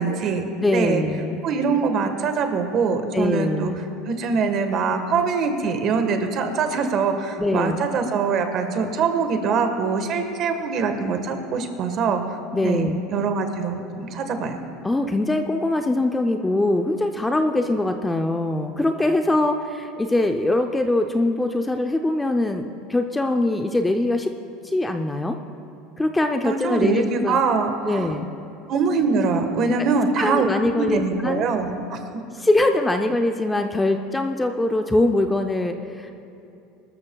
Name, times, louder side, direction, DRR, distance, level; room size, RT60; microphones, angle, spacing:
voice 1, 0.0-0.4 0.7-1.0 1.4-3.7 4.1-12.2 12.6-14.6 26.4-28.1 28.7-30.5 30.8-32.2, right 5 dB, 45° right, 6 dB, 1.3 m, -23 dB
voice 2, 0.6-1.4 3.1-3.8 7.4-7.8 12.5-13.0 14.8-24.3 24.6-25.4 26.0-27.4 27.9-28.3 29.8-29.9 30.2-31.5 32.3-36.1, left 2 dB, 10° left, 5 dB, 0.5 m, -22 dB
22.5 x 13.0 x 2.3 m, 2.7 s
supercardioid pair, 140°, 0 cm